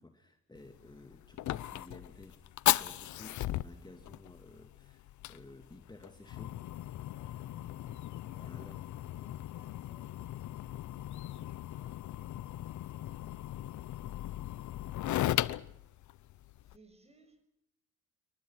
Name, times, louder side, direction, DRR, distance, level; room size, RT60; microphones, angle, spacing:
voice 1, 0.0-6.6 8.3-8.8, left 2 dB, 15° left, 2.7 m, -54 dB
Fire, 0.5-16.8, left 14 dB, 75° left, 0.8 m, -37 dB
voice 2, 7.1-8.8 9.1-14.5 14.8-15.7 16.3-17.4, right 2 dB, 20° right, 6.9 m, -66 dB
28.5 x 23.5 x 6.0 m
cardioid pair, 90°, 30 cm